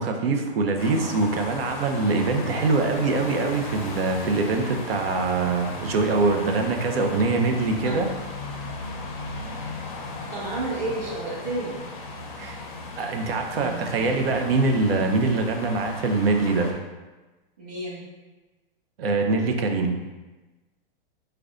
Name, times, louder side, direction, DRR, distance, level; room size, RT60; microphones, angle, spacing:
voice 1, 0.0-8.1 12.4-12.6 13.0-16.7 19.0-19.9, right 3 dB, 75° right, 4 dB, 0.6 m, -23 dB
sound 1, 0.8-16.7, left 2 dB, 40° left, 0.5 m, -36 dB
voice 2, 10.3-11.7 17.6-18.0, right 2 dB, 40° right, -7 dB, 1.3 m, -30 dB
4.8 x 2.2 x 2.4 m, 1.2 s
hypercardioid pair, 160°, 30 cm